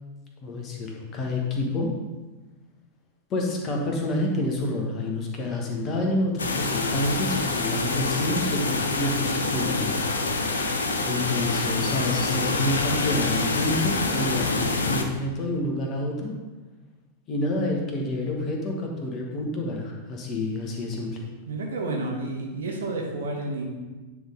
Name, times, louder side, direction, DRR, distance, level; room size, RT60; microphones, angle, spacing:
voice 1, 0.4-1.9 3.3-9.8 11.0-16.3 17.3-21.2, left 2 dB, 30° left, 0 dB, 1.4 m, -28 dB
sound 1, 6.4-15.0, left 3 dB, 70° left, 0.7 m, -26 dB
voice 2, 21.5-23.7, right 2 dB, 65° right, 0 dB, 1.3 m, -30 dB
9.4 x 3.7 x 3.8 m, 1.2 s
figure-of-eight pair, 90°, 0 cm